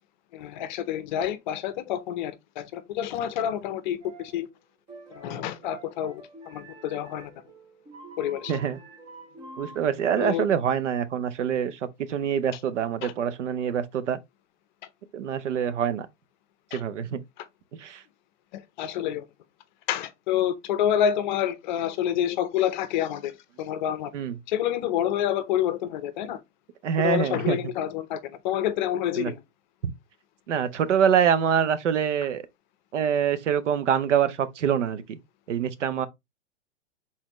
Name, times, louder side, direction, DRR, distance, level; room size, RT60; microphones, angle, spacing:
voice 1, 0.3-4.5 5.1-7.3 8.2-8.5 10.2-10.5 13.0-13.1 16.7-16.8 18.5-19.2 19.9-24.1 24.5-26.4 27.0-29.4, left 10 dB, 40° left, 0.6 m, -28 dB
sound 1, 4.0-4.4 4.9-9.8, right 2 dB, 10° right, 0.6 m, -47 dB
voice 2, 8.5-8.8 9.6-14.2 15.1-16.1 16.7-17.2 17.8-18.0 24.1-24.4 26.8-27.6 29.2-29.3 30.5-32.4 32.9-35.2 35.5-36.1, right 8 dB, 75° right, 0.8 m, -25 dB
4.2 x 3.8 x 2.9 m
hypercardioid pair, 140°, 36 cm